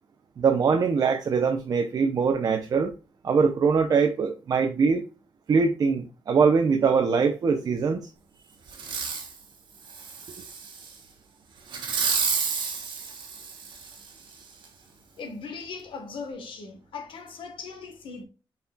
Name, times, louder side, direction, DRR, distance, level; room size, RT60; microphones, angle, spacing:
voice 1, 0.4-2.9 3.2-5.0 5.5-8.0, right 5 dB, 45° right, 0.5 m, -22 dB
Fireworks, 8.7-9.3 9.9-10.9 11.7-14.1 14.6-14.7, right 5 dB, 60° right, 1.2 m, -30 dB
voice 2, 15.2-18.2, left 4 dB, 75° left, 1.2 m, -39 dB
5.8 x 4.1 x 2.2 m
wide cardioid pair, 165°, 9 cm